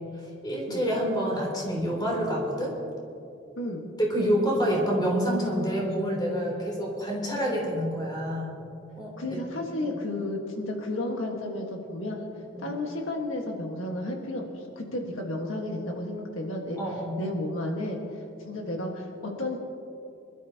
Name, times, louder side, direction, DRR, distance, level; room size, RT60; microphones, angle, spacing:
voice 1, 0.4-2.7 4.0-8.5 9.0-9.4 9.8-9.9 12.5-12.7 16.8-17.2, equal, 20° left, -2 dB, 3.4 m, -27 dB
voice 2, 9.2-12.2 12.6-16.8 17.2-19.6, left 1 dB, 80° left, 1 dB, 1.6 m, -32 dB
25.0 x 12.5 x 2.9 m, 2.7 s
head